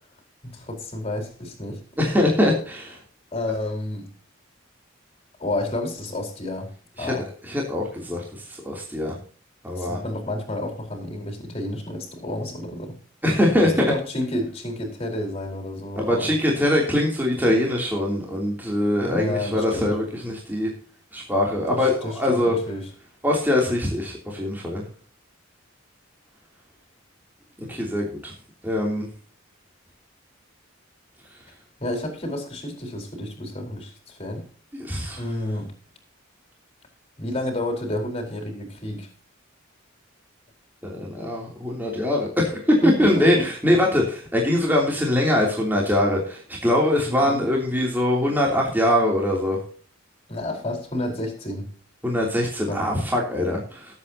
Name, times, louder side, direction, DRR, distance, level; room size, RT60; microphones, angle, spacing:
voice 1, 0.4-2.2 3.3-4.1 5.4-6.7 7.0-7.3 9.8-13.0 13.6-16.3 19.0-20.0 21.7-22.9 31.8-34.4 35.2-35.7 37.2-39.1 42.8-43.5 47.1-47.5 50.3-51.7 52.7-52.8, left 1 dB, 30° left, 3 dB, 4.5 m, -30 dB
voice 2, 2.0-3.0 7.0-7.1 7.5-9.2 9.6-10.0 13.2-13.9 16.0-20.7 21.1-22.5 23.2-24.8 27.6-28.3 28.6-29.1 34.7-35.2 40.8-49.6 52.0-53.9, left 1 dB, 10° right, -2 dB, 3.0 m, -22 dB
19.5 x 8.6 x 2.9 m, 0.42 s
head